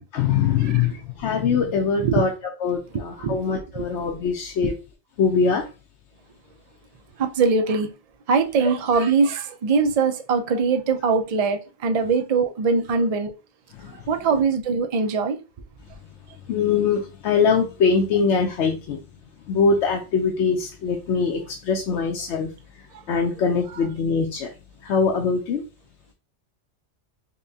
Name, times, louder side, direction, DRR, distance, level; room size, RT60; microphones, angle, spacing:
voice 1, 0.0-2.3 2.6-4.7 5.2-5.6 13.8-13.9 16.5-19.0 19.5-22.5 23.1-24.5 24.8-25.6, left 5 dB, 70° left, 0.9 m, -22 dB
voice 2, 0.6-1.0 2.0-2.2 2.9-3.9 7.2-7.9 8.3-13.3 14.1-15.4, right 5 dB, 65° right, 0.3 m, -22 dB
5.3 x 2.2 x 2.7 m
omnidirectional pair, 1.3 m